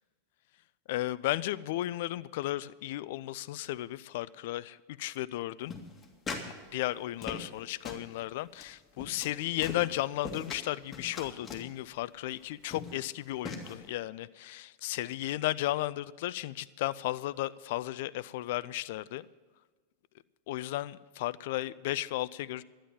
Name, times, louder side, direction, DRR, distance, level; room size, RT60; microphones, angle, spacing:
voice 1, 0.9-5.7 6.7-19.3 20.5-22.6, left 15 dB, 60° left, 0.4 m, -34 dB
sound 1, 5.7-6.5 6.8-7.6 7.9-8.1 8.6-8.7 9.0-9.3 9.6-10.6 10.9-11.7 12.3-12.4 12.7-13.1 13.5-13.8, left 4 dB, 20° left, 2.3 m, -40 dB
12.5 x 10.0 x 7.2 m
figure-of-eight pair, 90°, 0 cm